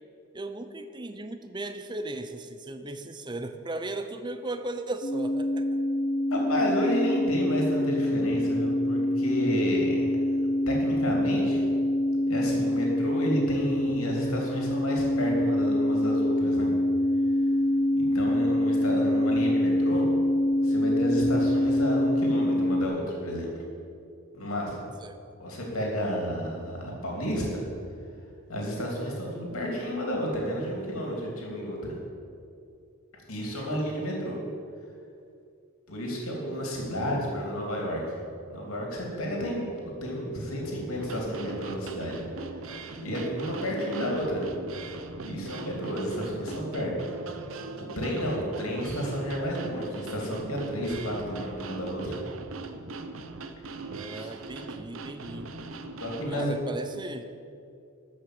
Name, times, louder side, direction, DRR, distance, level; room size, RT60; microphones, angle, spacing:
voice 1, 0.3-5.8 25.0-25.2 53.8-55.5 56.3-57.2, right 2 dB, 20° right, 8 dB, 0.6 m, -37 dB
sound 1, 5.0-22.9, left 1 dB, 40° left, 0.6 m, -25 dB
voice 2, 6.3-10.4 10.7-11.7 12.3-16.7 17.9-20.1 20.6-23.5 24.3-24.9 25.4-27.6 28.5-31.9 33.1-34.4 35.9-38.0 38.5-42.2 42.6-42.7 43.0-44.5 45.2-46.9 47.2-47.4 47.8-52.1 54.1-54.3 56.0-56.6, equal, 90° left, -1 dB, 2.9 m, -31 dB
sound 2, 41.0-56.3, right 3 dB, 75° right, 0.8 m, -40 dB
13.0 x 6.0 x 7.7 m, 2.5 s
head